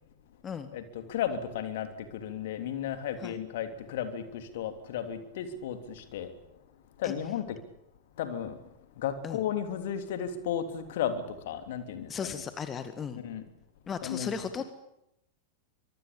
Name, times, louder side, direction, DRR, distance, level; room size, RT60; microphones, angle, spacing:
voice 1, 0.7-6.4 7.0-7.6 8.1-8.6 8.9-12.4 13.2-13.5 14.0-14.4, left 9 dB, 55° left, 9 dB, 3.2 m, -34 dB
voice 2, 12.1-13.2 13.9-14.6, left 7 dB, 20° left, 10 dB, 1.8 m, -35 dB
24.5 x 24.0 x 8.7 m, 0.83 s
figure-of-eight pair, 90°, 0 cm